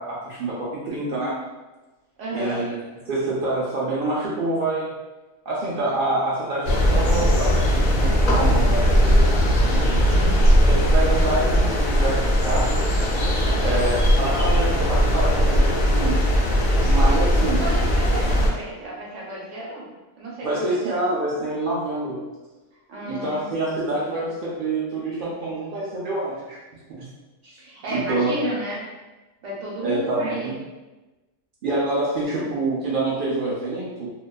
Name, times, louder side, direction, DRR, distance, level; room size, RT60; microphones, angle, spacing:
voice 1, 0.0-1.4 2.3-2.8 3.1-4.9 5.5-10.1 10.6-12.7 13.6-16.2 16.8-17.6 20.4-22.2 23.0-26.6 27.0-27.1 27.4-27.6 27.9-28.3 29.8-30.6 31.6-34.1, right 2 dB, 85° right, -7 dB, 0.4 m, -26 dB
voice 2, 2.2-2.6 13.4-13.8 17.6-19.9 20.2-21.0 22.9-23.5 27.6-28.8 29.4-30.5, right 1 dB, 65° right, -4 dB, 0.9 m, -32 dB
sound 1, 6.6-18.5, equal, 85° left, 0.4 m, -19 dB
2.5 x 2.2 x 2.2 m, 1.1 s
omnidirectional pair, 1.5 m